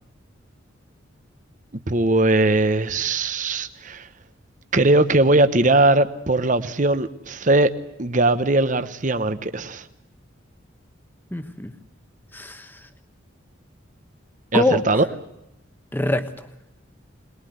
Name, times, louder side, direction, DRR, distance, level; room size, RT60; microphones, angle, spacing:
voice 1, 1.7-4.1 4.7-7.7 8.0-9.8 14.5-15.0, right 2 dB, 40° right, 11 dB, 1.0 m, -20 dB
voice 2, 11.3-11.7 12.3-12.9 14.5-15.0 15.9-16.5, left 1 dB, 10° left, 9 dB, 1.2 m, -24 dB
22.5 x 21.0 x 8.0 m, 0.85 s
head